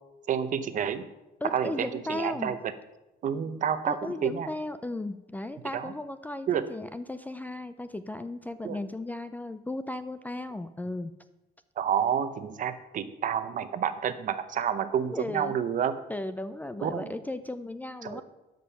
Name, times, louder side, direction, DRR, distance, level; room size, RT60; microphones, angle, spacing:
voice 1, 0.3-1.1 1.4-2.6 3.2-4.5 5.7-5.9 6.5-6.7 8.6-8.8 11.8-16.0 16.8-17.1 18.0-18.2, right 8 dB, 50° right, 11 dB, 0.8 m, -29 dB
voice 2, 1.4-2.5 3.9-11.1 15.1-15.6 16.1-18.2, left 2 dB, 10° left, 12 dB, 0.4 m, -36 dB
12.5 x 5.3 x 5.7 m, 1.0 s
cardioid pair, 110°, 17 cm